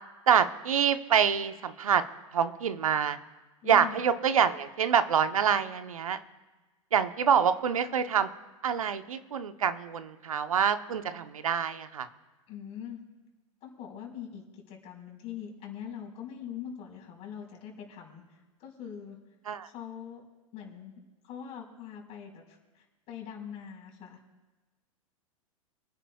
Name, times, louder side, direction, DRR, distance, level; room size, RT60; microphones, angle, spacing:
voice 1, 0.3-2.0 2.3-3.2 3.6-6.2 6.9-8.3 8.6-12.1 19.5-19.7, right 8 dB, 75° right, 10 dB, 0.9 m, -26 dB
voice 2, 3.6-4.1 12.5-13.0 13.6-19.2 19.6-20.2 20.5-20.9 21.2-24.2, left 8 dB, 40° left, 0 dB, 4.7 m, -43 dB
29.0 x 10.0 x 2.4 m, 1.2 s
hypercardioid pair, 100°, 18 cm